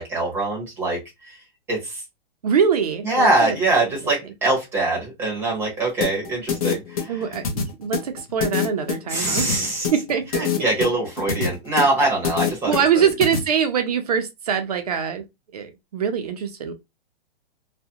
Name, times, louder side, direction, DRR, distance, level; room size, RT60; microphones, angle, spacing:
voice 1, 0.0-1.4 1.7-2.0 3.0-7.2 9.1-9.9 10.4-13.0, right 2 dB, 5° right, 0.7 m, -23 dB
voice 2, 2.4-3.6 7.1-10.5 12.7-15.2 15.5-16.7, right 7 dB, 40° right, 0.4 m, -23 dB
sound 1, 6.0-13.4, left 7 dB, 35° left, 0.6 m, -25 dB
2.4 x 2.0 x 2.7 m
hypercardioid pair, 160°, 31 cm